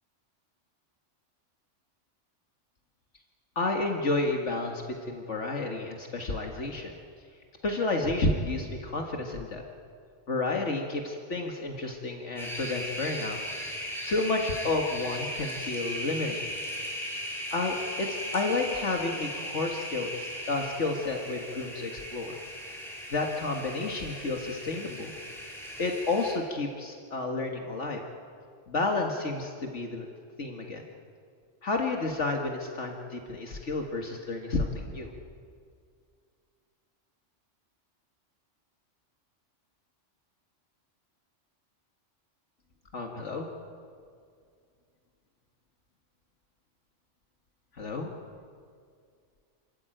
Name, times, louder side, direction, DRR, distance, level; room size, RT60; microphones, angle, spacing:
voice 1, 3.6-4.8 5.1-7.0 7.6-9.6 10.3-13.4 14.1-16.4 17.5-22.3 23.1-25.1 25.8-28.0 28.7-30.1 30.4-30.8 31.6-35.1 42.9-43.5 47.8-48.1, left 3 dB, 70° left, 2 dB, 2.1 m, -31 dB
sound 1, 12.4-26.3, equal, ahead, 5.1 m, -37 dB
29.5 x 13.5 x 9.1 m, 2.2 s
omnidirectional pair, 1.3 m